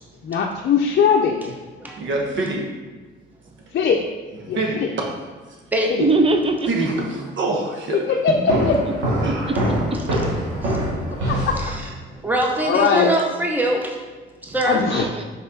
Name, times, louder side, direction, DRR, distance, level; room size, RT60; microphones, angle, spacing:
voice 1, 0.2-1.5 3.7-4.0 4.5-4.9 5.9-6.1 7.9-8.8 11.3-11.6 12.7-13.1 14.7-15.1, left 6 dB, 55° left, 1 dB, 0.6 m, -20 dB
voice 2, 2.0-2.7 4.4-4.9 6.7-8.4 9.2-9.5, right 2 dB, 70° right, 1 dB, 1.2 m, -25 dB
voice 3, 6.0-6.7 9.3-10.2 14.9-15.2, right 2 dB, 30° right, 6 dB, 0.6 m, -22 dB
sound 1, 8.5-12.2, equal, 85° right, 1.9 m, -23 dB
voice 4, 11.6-11.9 12.2-14.0 14.4-14.8, right 1 dB, 10° right, 0 dB, 1.0 m, -23 dB
5.5 x 4.3 x 3.9 m, 1.3 s
cardioid pair, 90°, 20 cm